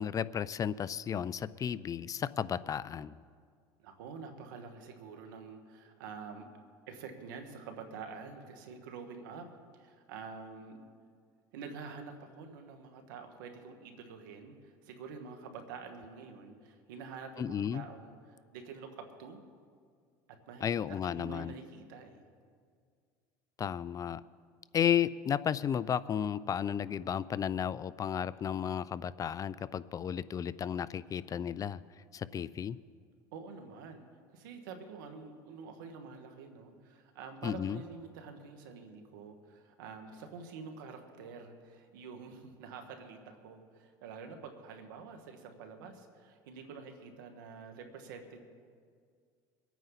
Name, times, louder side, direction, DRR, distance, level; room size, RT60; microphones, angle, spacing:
voice 1, 0.0-3.2 17.4-17.8 20.6-21.5 23.6-24.2 24.7-31.8 32.1-32.8 37.4-37.8, left 8 dB, 35° left, 18 dB, 0.4 m, -33 dB
voice 2, 3.8-6.5 6.9-10.8 11.5-19.4 20.5-22.3 33.3-34.1 34.3-48.4, right 5 dB, 85° right, 5 dB, 1.9 m, -47 dB
24.5 x 9.2 x 4.1 m, 2.1 s
supercardioid pair, 95°, 11 cm